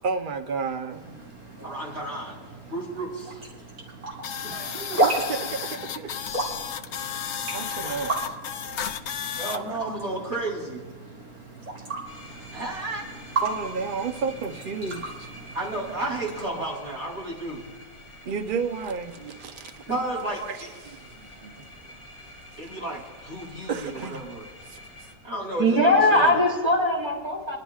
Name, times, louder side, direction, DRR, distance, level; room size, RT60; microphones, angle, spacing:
voice 1, 0.0-1.2 4.6-6.2 7.5-8.2 9.7-9.8 13.4-15.3 18.2-22.0 23.7-24.3 24.7-24.8, right 5 dB, 80° right, 8 dB, 0.4 m, -32 dB
sound 1, 0.9-16.5, right 2 dB, 55° right, 2.6 m, -34 dB
voice 2, 1.6-3.4 4.4-5.0 9.4-10.8 12.3-13.0 15.5-17.6 19.9-20.7 22.6-24.4 25.2-26.3, right 2 dB, 40° right, -4 dB, 3.4 m, -33 dB
sound 2, 4.2-9.6, left 8 dB, 80° left, 0.6 m, -33 dB
sound 3, 12.0-25.1, left 1 dB, 5° left, 3.3 m, -47 dB
voice 3, 25.6-27.6, left 1 dB, 15° right, -4 dB, 2.9 m, -20 dB
25.0 x 12.0 x 2.4 m, 1.4 s
omnidirectional pair, 1.9 m